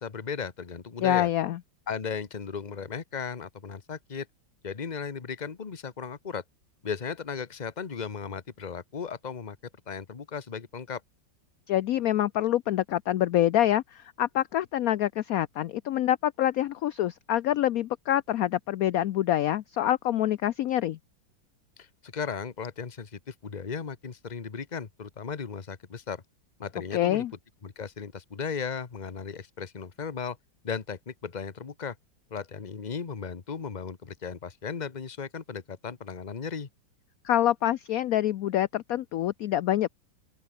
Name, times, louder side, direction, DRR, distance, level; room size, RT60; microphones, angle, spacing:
voice 1, 0.0-1.3 1.9-4.3 4.6-6.4 6.8-9.6 9.9-11.0 21.8-26.2 26.6-27.2 27.6-30.4 30.6-31.9 32.3-36.7, left 6 dB, 25° left, 1.1 m, -36 dB
voice 2, 1.0-1.6 11.7-21.0 26.9-27.3 37.2-39.9, left 12 dB, 70° left, 0.9 m, -26 dB
open air
omnidirectional pair, 2.1 m